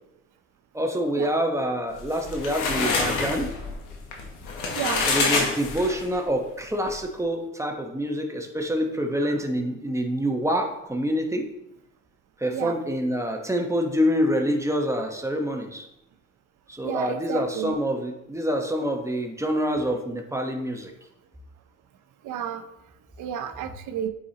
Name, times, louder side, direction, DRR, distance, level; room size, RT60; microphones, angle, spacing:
voice 1, 0.7-3.5 5.1-11.5 12.4-15.9 16.7-20.9, equal, 10° right, 3 dB, 1.0 m, -26 dB
sound 1, 2.0-6.2, left 4 dB, 90° left, 1.2 m, -26 dB
voice 2, 4.7-5.1 9.2-9.4 12.5-12.8 16.8-17.8 22.2-22.7 23.2-24.1, right 9 dB, 80° right, 9 dB, 0.7 m, -32 dB
8.5 x 4.8 x 2.9 m, 0.82 s
cardioid pair, 90°, 30 cm